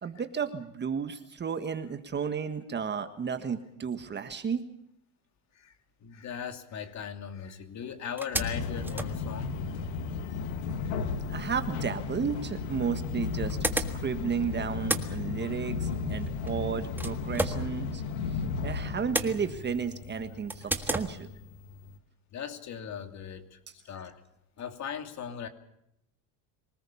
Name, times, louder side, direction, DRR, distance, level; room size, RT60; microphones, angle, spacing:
voice 1, 0.0-4.6 11.3-18.0 18.6-21.3, right 6 dB, 25° right, 9 dB, 1.5 m, -33 dB
voice 2, 6.0-9.6 10.2-10.4 10.7-11.0 18.5-18.6 20.6-20.7 22.3-23.6 23.8-24.2 24.6-25.5, left 7 dB, 40° left, 7 dB, 2.8 m, -39 dB
sound 1, 7.4-7.5 7.8-10.0 12.0-12.1 13.0-14.4 14.6-18.4 18.7-19.9 20.5-21.1, right 2 dB, 5° right, 1.6 m, -35 dB
sound 2, 8.3-22.0, left 5 dB, 85° left, 2.1 m, -35 dB
25.5 x 19.0 x 7.1 m, 0.76 s
cardioid pair, 135°, 41 cm